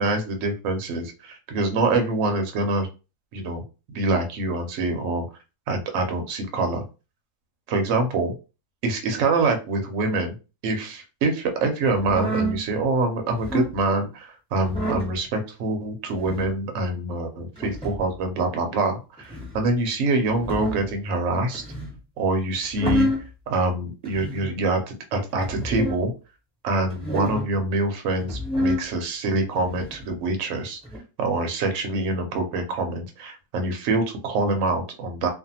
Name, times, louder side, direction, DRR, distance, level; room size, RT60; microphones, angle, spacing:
voice 1, 0.0-2.9 3.3-3.6 3.9-5.2 5.7-6.8 7.7-8.3 8.8-10.3 10.6-21.6 22.2-23.1 23.5-26.1 26.6-30.8 31.2-35.3, right 2 dB, 65° right, 4 dB, 0.9 m, -25 dB
sound 1, 12.0-12.6 13.3-13.7 14.6-15.1 16.1-16.5 17.6-18.1 19.2-19.6 20.3-20.9 21.5-22.0 22.6-23.3 24.0-24.5 25.4-26.0 26.9-27.5 28.2-28.8 29.5-30.0 30.8-31.0, equal, 5° left, 1.1 m, -28 dB
2.5 x 2.4 x 2.7 m, 0.31 s
omnidirectional pair, 1.6 m